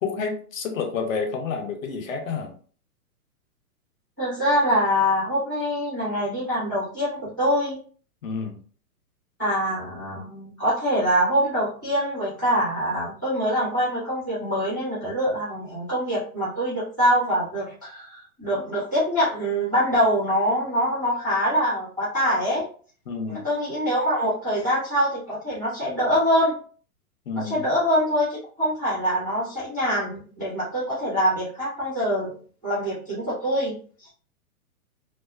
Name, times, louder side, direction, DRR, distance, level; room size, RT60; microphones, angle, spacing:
voice 1, 0.0-2.5 8.2-8.6 23.1-23.4 27.3-27.6, left 5 dB, 60° left, 4 dB, 0.7 m, -29 dB
voice 2, 4.2-7.8 9.4-22.7 23.3-26.6 27.3-32.3 32.6-34.1, equal, 15° right, -9 dB, 0.3 m, -24 dB
2.3 x 2.3 x 2.4 m, 0.42 s
hypercardioid pair, 150°, 45 cm